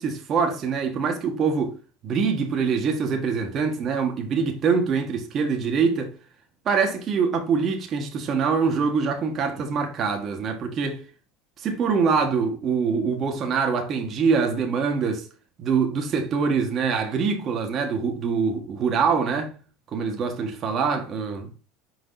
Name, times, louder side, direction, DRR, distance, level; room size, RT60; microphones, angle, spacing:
voice 1, 0.0-1.7 2.0-6.1 6.6-11.0 11.6-15.3 15.6-19.5 19.9-21.5, right 5 dB, 40° right, 1.5 m, -24 dB
6.2 x 4.2 x 4.0 m
supercardioid pair, 105°, 0 cm